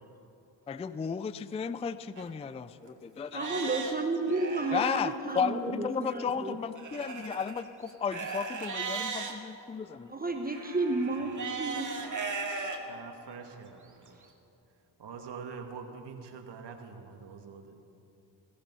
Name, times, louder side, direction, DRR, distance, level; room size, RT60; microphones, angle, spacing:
voice 1, 0.7-3.5 4.7-5.1 5.4-10.1, left 6 dB, 15° left, 15 dB, 0.3 m, -34 dB
Livestock farm animals working animals, 2.2-2.3 2.8-2.9 3.3-5.0 6.8-9.3 10.5-12.8 13.4-13.5 14.1-14.2, right 4 dB, 40° right, 2.2 m, -37 dB
voice 2, 3.3-6.6 10.1-12.0, right 2 dB, 20° right, 4 dB, 1.2 m, -32 dB
voice 3, 12.9-14.2 15.0-17.7, right 5 dB, 60° right, 4 dB, 2.1 m, -45 dB
17.0 x 15.0 x 5.5 m, 2.9 s
cardioid pair, 80°, 47 cm